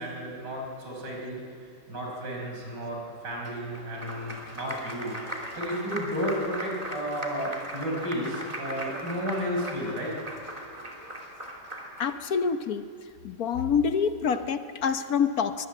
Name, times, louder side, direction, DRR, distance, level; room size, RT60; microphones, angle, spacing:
voice 1, 0.0-1.4 1.9-3.0 3.2-10.1, equal, 85° right, -1 dB, 6.1 m, -33 dB
Applause, 3.4-12.2, right 1 dB, 20° right, 2.9 m, -38 dB
voice 2, 12.0-12.9 13.2-15.7, left 6 dB, 65° left, 10 dB, 1.3 m, -26 dB
23.5 x 19.5 x 9.2 m, 2.5 s
omnidirectional pair, 1.8 m